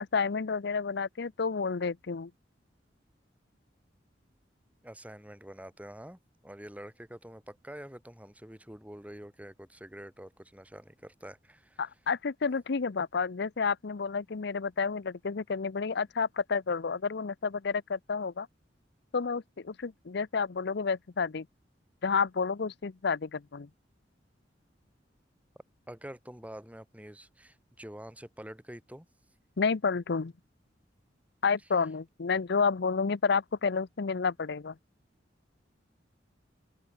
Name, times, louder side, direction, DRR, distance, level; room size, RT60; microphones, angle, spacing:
voice 1, 0.1-2.3 11.8-18.5 19.1-21.5 22.0-23.7 29.6-30.3 31.4-34.7, left 5 dB, 65° left, 0.6 m, -30 dB
voice 2, 4.8-11.8 25.9-29.1, equal, 10° right, 3.7 m, -46 dB
head